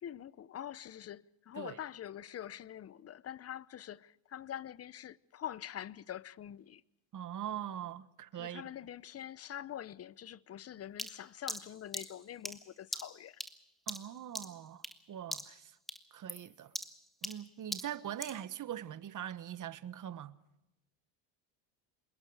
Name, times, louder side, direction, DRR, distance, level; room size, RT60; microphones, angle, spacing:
voice 1, 0.0-6.8 8.3-13.4, left 10 dB, 35° left, 0.8 m, -45 dB
voice 2, 7.1-8.6 13.9-15.8 16.1-16.7 17.2-20.4, right 10 dB, 45° right, 1.3 m, -42 dB
sound 1, 11.0-15.0 15.3-15.6 15.9-18.4, equal, ahead, 1.7 m, -42 dB
28.0 x 22.0 x 4.9 m
supercardioid pair, 95°, 44 cm